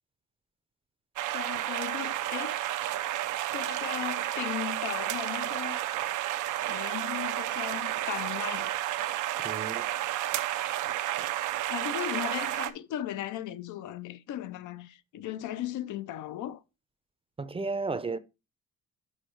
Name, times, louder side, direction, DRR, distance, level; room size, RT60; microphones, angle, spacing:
sound 1, 1.2-12.7, right 13 dB, 85° right, 0.6 m, -31 dB
voice 1, 1.3-2.6 3.5-5.8 6.7-8.7 11.7-16.6, left 12 dB, 80° left, 0.6 m, -37 dB
voice 2, 9.4-9.9 17.4-18.2, right 3 dB, 20° right, 0.6 m, -33 dB
6.5 x 5.0 x 4.5 m
cardioid pair, 90°, 30 cm